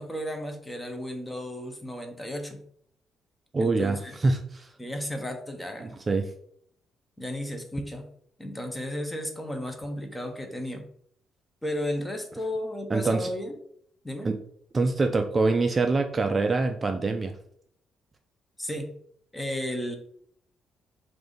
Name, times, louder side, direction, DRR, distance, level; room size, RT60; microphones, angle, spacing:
voice 1, 0.0-2.6 3.6-4.2 4.8-5.9 7.2-8.1 8.4-10.9 11.6-13.5 14.0-14.3 18.6-18.9 19.3-20.0, left 1 dB, 10° left, 5 dB, 0.7 m, -34 dB
voice 2, 3.5-4.7 5.8-6.3 12.9-13.3 14.2-14.4 14.7-17.3, right 3 dB, 25° right, 6 dB, 0.3 m, -25 dB
4.8 x 2.6 x 3.7 m, 0.65 s
cardioid pair, 115°, 0 cm